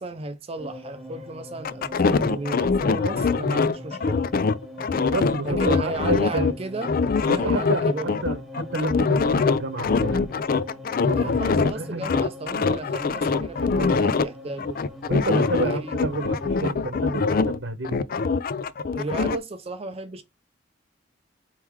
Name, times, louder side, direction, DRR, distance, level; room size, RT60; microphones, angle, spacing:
voice 1, 0.0-4.2 5.4-8.2 11.1-14.8 15.4-15.9 18.9-20.2, right 2 dB, 35° right, 0.5 m, -34 dB
sound 1, 0.6-16.7, left 1 dB, ahead, 0.9 m, -42 dB
sound 2, 1.6-6.5 6.8-11.7 12.0-14.2 14.6-17.6 17.8-19.4, left 4 dB, 50° left, 0.4 m, -23 dB
voice 2, 5.1-6.6 7.3-10.3 11.0-12.1 13.7-14.0 15.1-18.0, right 2 dB, 80° right, 0.9 m, -30 dB
4.5 x 3.6 x 3.1 m
head